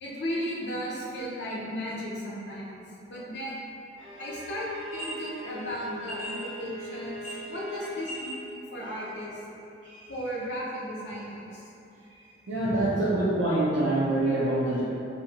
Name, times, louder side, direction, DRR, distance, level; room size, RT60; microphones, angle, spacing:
voice 1, 0.0-2.8 3.1-3.7 4.2-9.4 10.1-11.7 12.6-12.9, equal, 65° left, -5 dB, 0.6 m, -35 dB
Bowed string instrument, 4.0-8.1, left 1 dB, 5° left, 1.4 m, -40 dB
sound 1, 4.8-5.2 6.1-6.5 7.0-7.7 8.0-8.5, right 1 dB, 10° right, 1.2 m, -39 dB
voice 2, 9.8-10.5 12.5-14.8, right 1 dB, 75° right, -8 dB, 0.4 m, -26 dB
2.6 x 2.5 x 2.8 m, 2.8 s
head